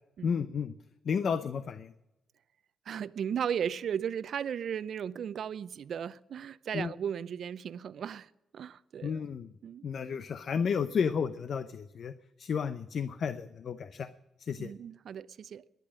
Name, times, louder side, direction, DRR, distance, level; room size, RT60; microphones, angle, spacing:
voice 1, 0.2-0.7 1.0-1.9 6.7-6.9 9.0-9.5 9.8-12.1 12.4-14.1 14.4-14.7, left 6 dB, 65° left, 0.7 m, -32 dB
voice 2, 2.9-9.3 9.6-9.8 14.6-15.7, right 8 dB, 70° right, 0.5 m, -36 dB
18.0 x 11.0 x 6.3 m
supercardioid pair, 55°, 0 cm